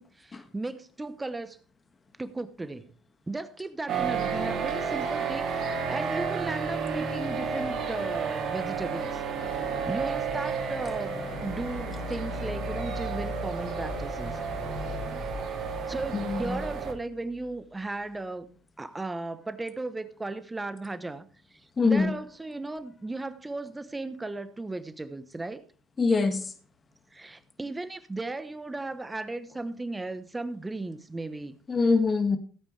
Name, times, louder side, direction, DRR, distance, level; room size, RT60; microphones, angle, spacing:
voice 1, 0.0-1.6 2.2-3.0 3.3-9.2 9.5-14.4 15.9-25.6 27.1-31.6, right 2 dB, 15° right, 1.1 m, -36 dB
sound 1, 3.9-16.9, right 6 dB, 50° right, 3.0 m, -32 dB
sound 2, 9.3-17.5, left 2 dB, 75° left, 3.9 m, -40 dB
voice 2, 16.1-16.6 21.8-22.1 26.0-26.5 31.7-32.4, left 4 dB, 30° left, 1.9 m, -24 dB
17.0 x 8.8 x 3.4 m
hypercardioid pair, 65°, 0 cm